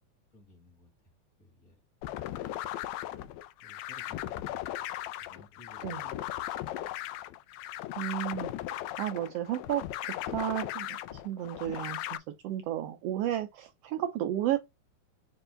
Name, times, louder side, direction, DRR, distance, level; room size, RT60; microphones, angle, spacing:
voice 1, 0.3-1.8 3.6-4.8 5.2-6.4, left 1 dB, 35° left, 2.0 m, -58 dB
sound 1, 2.0-12.2, left 14 dB, 80° left, 1.8 m, -37 dB
voice 2, 7.9-8.5 9.0-12.0 12.4-14.6, right 12 dB, 90° right, 1.3 m, -33 dB
5.2 x 4.5 x 4.4 m
omnidirectional pair, 3.4 m